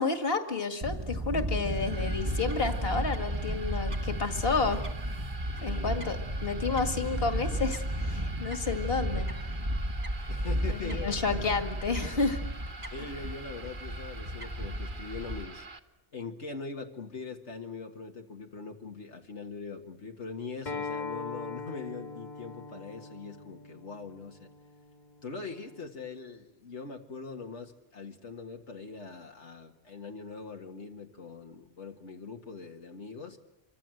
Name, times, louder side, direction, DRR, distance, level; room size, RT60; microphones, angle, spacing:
voice 1, 0.0-4.8 5.6-6.2 6.4-9.3 10.7-12.4, left 4 dB, 55° left, 7 dB, 2.3 m, -30 dB
Fowl / Bird, 0.8-15.4, equal, 30° right, 1.5 m, -33 dB
sound 1, 1.6-15.8, right 3 dB, 45° right, 1.4 m, -46 dB
voice 2, 5.6-5.9 10.3-11.1 12.9-15.7 16.1-24.5 25.2-33.4, left 4 dB, 85° left, 2 dB, 2.1 m, -42 dB
Acoustic guitar, 20.7-25.9, left 4 dB, 40° left, 1.8 m, -41 dB
26.0 x 25.0 x 7.8 m, 0.88 s
omnidirectional pair, 1.2 m